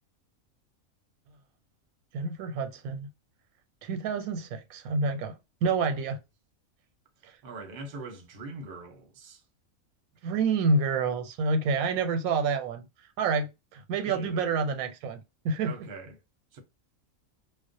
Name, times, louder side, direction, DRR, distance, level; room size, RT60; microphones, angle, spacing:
voice 1, 2.1-3.1 3.8-5.3 5.6-6.2 7.2-7.3 10.2-12.8 13.2-15.7, right 4 dB, 90° right, 1.0 m, -28 dB
voice 2, 7.4-9.4 14.1-14.6 15.6-16.2 16.5-16.6, right 3 dB, 50° right, 0.7 m, -42 dB
2.3 x 2.1 x 2.5 m
omnidirectional pair, 1.5 m